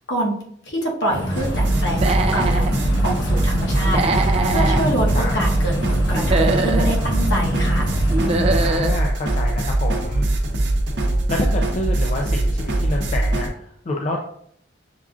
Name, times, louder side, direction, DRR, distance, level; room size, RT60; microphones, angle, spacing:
voice 1, 0.7-7.8, equal, 65° left, -2 dB, 1.0 m, -26 dB
sound 1, 1.1-8.7, equal, 85° left, 1.1 m, -26 dB
sound 2, 1.3-13.5, right 1 dB, 70° right, 0.7 m, -21 dB
Human voice / Animal, 1.9-2.7 3.8-4.8 6.1-7.0 8.1-9.0, right 3 dB, 30° right, 0.3 m, -22 dB
voice 2, 4.6-5.3 8.6-10.3 11.3-14.2, left 1 dB, 40° left, 0 dB, 0.4 m, -28 dB
6.8 x 2.4 x 2.4 m, 0.66 s
head